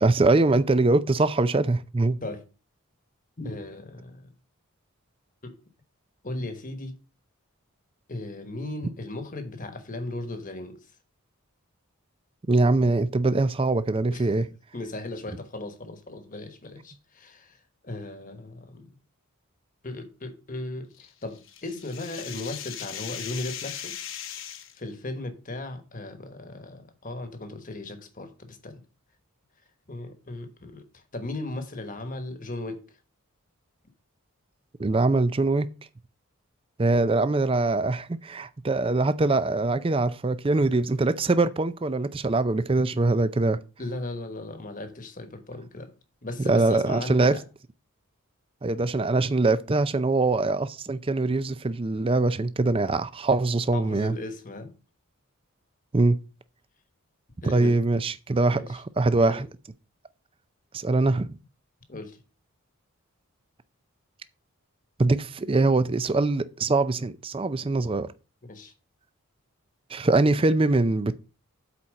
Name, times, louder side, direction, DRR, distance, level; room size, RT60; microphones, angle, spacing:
voice 1, 0.0-2.2 12.5-14.4 34.8-35.7 36.8-43.6 46.4-47.4 48.6-54.2 55.9-56.2 57.4-59.5 60.7-61.3 65.0-68.1 69.9-71.1, right 2 dB, 25° right, 0.4 m, -23 dB
voice 2, 3.4-4.3 5.4-5.5 6.2-7.0 8.1-10.8 14.1-14.3 14.7-17.6 17.8-19.0 19.8-24.0 24.7-28.8 29.9-32.8 43.8-45.9 46.2-47.4 53.7-54.7 57.4-57.7 58.5-58.8 59.2-59.4 61.9-62.2 68.4-68.7, left 2 dB, 35° left, 1.2 m, -37 dB
sound 1, 21.0-24.8, left 10 dB, 60° left, 1.0 m, -38 dB
8.4 x 4.4 x 6.3 m
head